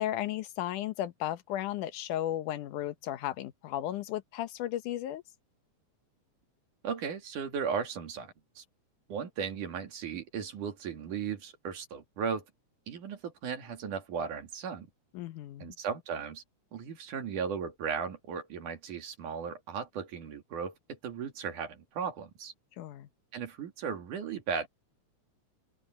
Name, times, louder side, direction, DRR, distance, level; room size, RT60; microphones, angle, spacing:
voice 1, 0.0-5.2 15.1-15.7 22.8-23.1, left 13 dB, 85° left, 2.5 m, -34 dB
voice 2, 6.8-8.6 9.1-12.5 12.9-14.9 15.6-16.4 16.7-22.5 23.3-24.7, right 6 dB, 80° right, 3.9 m, -36 dB
open air
omnidirectional pair, 3.5 m